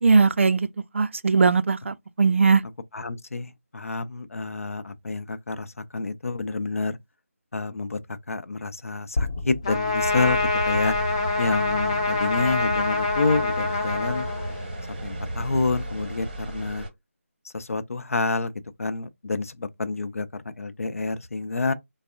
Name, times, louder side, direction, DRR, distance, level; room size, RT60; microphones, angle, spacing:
voice 1, 0.0-0.7 0.9-2.6, right 4 dB, 55° right, 0.3 m, -19 dB
voice 2, 2.9-7.0 7.5-10.4 10.7-10.9 11.4-14.3 15.0-16.9 17.4-18.5 18.8-21.7, left 3 dB, 70° left, 0.5 m, -28 dB
sound 1, 9.2-13.4, left 3 dB, 55° left, 0.9 m, -35 dB
Trumpet, 9.6-14.9, left 3 dB, 25° left, 0.5 m, -26 dB
sound 2, 10.0-16.9, right 1 dB, 35° right, 0.8 m, -34 dB
3.4 x 2.0 x 3.6 m
figure-of-eight pair, 170°, 8 cm